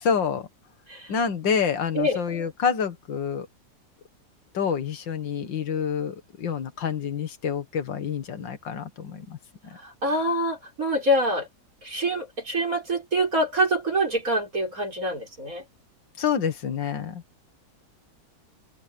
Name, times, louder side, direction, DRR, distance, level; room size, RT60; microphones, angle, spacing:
voice 1, 0.0-0.5 1.1-3.5 4.5-9.4 16.2-17.2, left 7 dB, 85° left, 2.3 m, -27 dB
voice 2, 9.8-11.5 11.8-15.6, right 1 dB, 50° right, 5.2 m, -25 dB
open air
omnidirectional pair, 1.9 m